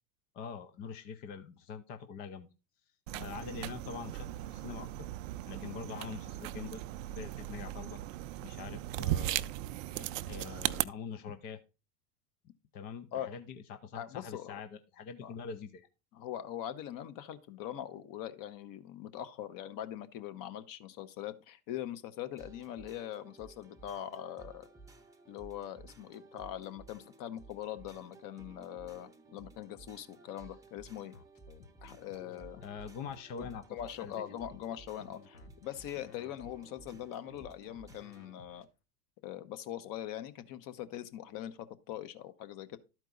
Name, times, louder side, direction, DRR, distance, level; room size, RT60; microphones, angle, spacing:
voice 1, 0.3-2.5 3.2-5.1 5.5-6.8 7.2-8.0 8.4-9.5 9.9-11.6 12.7-15.9 32.6-33.6 34.0-34.1 35.1-35.3, left 6 dB, 20° left, 0.3 m, -44 dB
sound 1, 3.1-10.8, right 14 dB, 55° right, 0.5 m, -37 dB
voice 2, 14.0-14.6 15.2-15.3 16.1-24.7 25.3-31.1 31.8-32.6 33.4-38.7 39.2-41.6 41.9-42.8, left 11 dB, 40° left, 1.0 m, -42 dB
sound 2, 22.4-38.4, right 3 dB, 5° right, 0.8 m, -56 dB
sound 3, 31.1-38.7, left 5 dB, 85° left, 1.3 m, -55 dB
12.0 x 4.5 x 3.9 m
hypercardioid pair, 100°, 49 cm